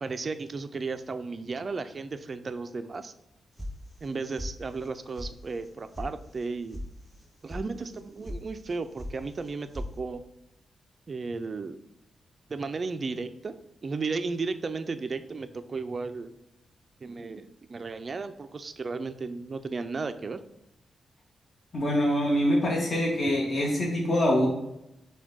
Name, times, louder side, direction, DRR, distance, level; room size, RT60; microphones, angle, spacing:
voice 1, 0.0-3.1 4.0-6.8 7.4-10.2 11.1-11.8 12.5-13.6 13.8-16.3 17.0-20.4, right 4 dB, 40° right, 10 dB, 0.3 m, -34 dB
sound 1, 3.6-4.1 4.4-4.9 5.1-5.3 5.6-6.1 6.4-6.8 7.1-7.6 7.9-8.4 8.7-9.2 9.4-9.9, left 1 dB, 5° left, 0.8 m, -37 dB
voice 2, 21.7-24.5, equal, 35° left, -3 dB, 1.2 m, -24 dB
6.0 x 2.2 x 3.7 m, 0.88 s
cardioid pair, 110°, 0 cm